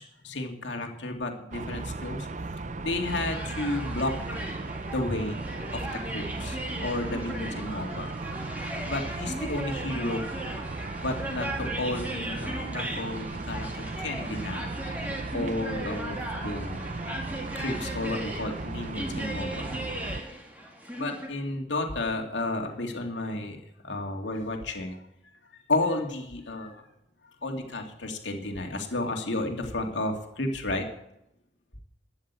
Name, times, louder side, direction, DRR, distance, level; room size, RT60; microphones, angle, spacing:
voice 1, 0.0-2.3 2.8-4.2 4.9-5.4 5.7-8.1 8.8-10.2 11.0-14.7 15.3-16.9 17.5-19.7 21.0-23.6 23.8-25.0 25.7-26.8 27.4-30.9, left 2 dB, 75° left, 3 dB, 2.4 m, -32 dB
sound 1, 1.5-20.2, right 3 dB, 40° right, 0.6 m, -36 dB
sound 2, 3.0-21.3, right 1 dB, 10° right, 2.3 m, -38 dB
12.5 x 10.5 x 8.3 m, 0.84 s
head